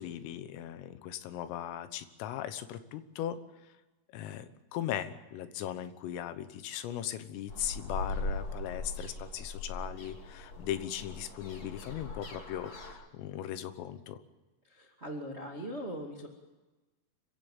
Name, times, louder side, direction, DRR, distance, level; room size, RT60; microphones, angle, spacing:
voice 1, 0.0-3.4 4.1-14.2, left 11 dB, 85° left, 11 dB, 3.8 m, -38 dB
sound 1, 7.5-12.9, left 2 dB, 40° left, 3.5 m, -40 dB
voice 2, 14.6-16.3, equal, 50° right, 1 dB, 0.7 m, -40 dB
26.0 x 16.0 x 7.3 m, 1.2 s
omnidirectional pair, 5.8 m